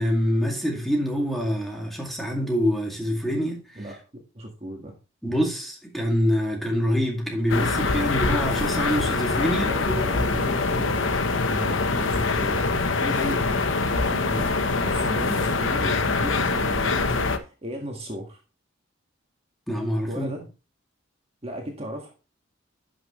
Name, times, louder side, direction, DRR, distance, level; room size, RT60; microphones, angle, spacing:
voice 1, 0.0-3.6 5.2-10.1 19.7-20.3, equal, ahead, 2.2 m, -25 dB
voice 2, 3.8-5.0 9.5-11.2 11.4-14.5 14.8-18.4 20.1-20.4 21.4-22.3, right 1 dB, 30° right, 1.7 m, -36 dB
sound 1, 7.5-17.4, left 3 dB, 75° left, 0.9 m, -24 dB
11.0 x 6.2 x 3.1 m
head